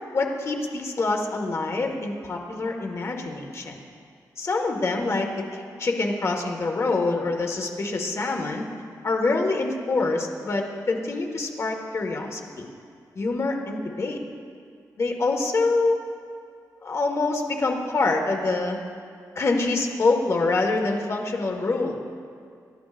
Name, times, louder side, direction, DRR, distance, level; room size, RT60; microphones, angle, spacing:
voice 1, 0.1-3.8 4.4-8.7 9.0-12.7 13.2-14.2 15.0-16.0 16.8-18.8 19.4-22.0, left 3 dB, 45° left, 2 dB, 1.6 m, -25 dB
27.5 x 13.5 x 2.5 m, 2.3 s
wide cardioid pair, 155°, 7 cm